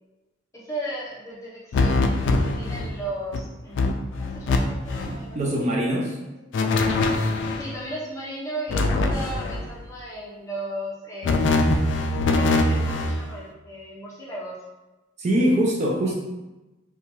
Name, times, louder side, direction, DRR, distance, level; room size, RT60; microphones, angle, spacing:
voice 1, 0.5-2.2 2.4-5.7 6.2-6.3 7.5-11.6 12.3-14.6 16.0-16.1, right 1 dB, 15° left, -7 dB, 0.7 m, -36 dB
sound 1, 1.7-3.0 3.3-3.4 3.8-4.6 4.9-5.2 6.5-7.7 8.7-9.7 11.2-13.2, left 2 dB, 65° left, 0.3 m, -22 dB
voice 2, 5.0-6.1 15.2-16.1, right 1 dB, 35° right, -2 dB, 0.4 m, -23 dB
2.7 x 2.2 x 2.9 m, 1.0 s
head